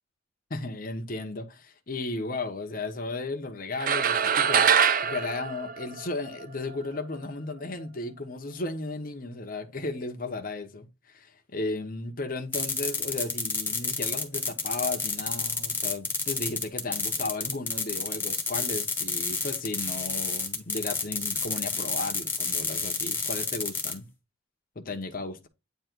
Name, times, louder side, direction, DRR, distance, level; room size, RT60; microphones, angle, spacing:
voice 1, 0.5-4.7 5.0-24.0 24.7-25.5, left 2 dB, 45° left, 0.9 m, -35 dB
sound 1, 3.8-6.4, right 7 dB, 40° right, 0.4 m, -23 dB
sound 2, 12.5-23.9, left 4 dB, 10° left, 1.1 m, -30 dB
9.1 x 3.0 x 4.5 m
head